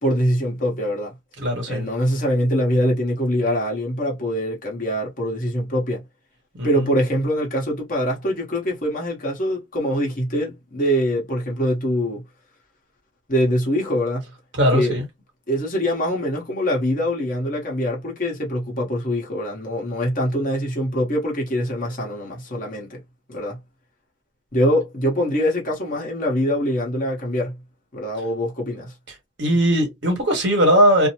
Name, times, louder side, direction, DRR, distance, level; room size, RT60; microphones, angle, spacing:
voice 1, 0.0-1.1 1.7-6.0 6.6-12.2 13.3-14.2 14.7-15.0 15.5-23.0 23.3-23.6 24.5-27.6 27.9-28.9, equal, 40° left, 1.0 m, -23 dB
voice 2, 1.4-1.9 6.6-6.8 14.6-15.0 29.4-31.1, equal, 60° right, 1.3 m, -19 dB
2.6 x 2.1 x 2.8 m
head